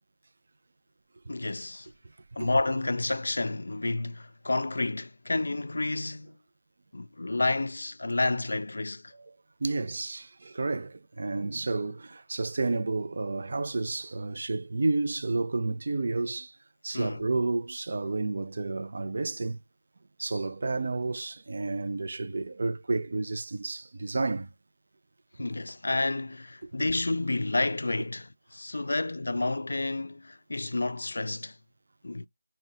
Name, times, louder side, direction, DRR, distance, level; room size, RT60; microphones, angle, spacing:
voice 1, 1.3-1.9 2.4-6.3 6.9-9.1 16.9-17.3 25.4-31.6 32.0-32.3, left 2 dB, 75° left, 0.3 m, -30 dB
voice 2, 9.6-16.6 16.8-19.6 20.2-24.5, right 3 dB, 50° right, 0.4 m, -31 dB
3.7 x 2.1 x 2.6 m
figure-of-eight pair, 175°, 0 cm